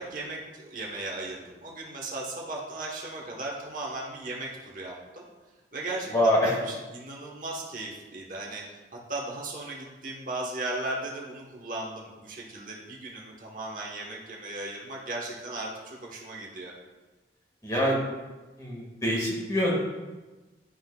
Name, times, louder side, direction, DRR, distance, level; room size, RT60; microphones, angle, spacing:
voice 1, 0.0-5.3 5.7-6.1 6.4-8.7 9.1-16.7, right 2 dB, 45° right, -2 dB, 1.1 m, -37 dB
voice 2, 6.1-6.6 17.6-18.0 18.6-19.8, equal, 20° left, -4 dB, 1.8 m, -25 dB
11.0 x 6.0 x 2.3 m, 1.2 s
head